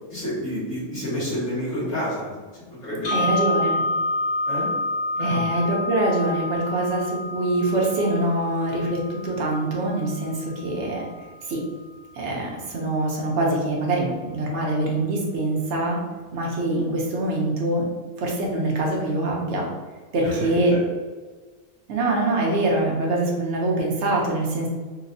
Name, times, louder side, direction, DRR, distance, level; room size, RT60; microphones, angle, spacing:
voice 1, 0.1-2.4 2.7-3.3 4.5-4.7 5.2-5.4 12.3-12.4 20.2-20.8, equal, 50° left, -9 dB, 1.9 m, -29 dB
sound 1, 3.0-11.1, left 2 dB, 80° left, 0.4 m, -29 dB
voice 2, 3.1-3.8 5.2-11.0 11.5-11.6 12.1-16.0 16.3-17.9 18.2-19.7 20.1-20.7 21.9-24.7, right 2 dB, 60° right, -1 dB, 0.9 m, -24 dB
4.0 x 2.2 x 2.6 m, 1.4 s
omnidirectional pair, 1.5 m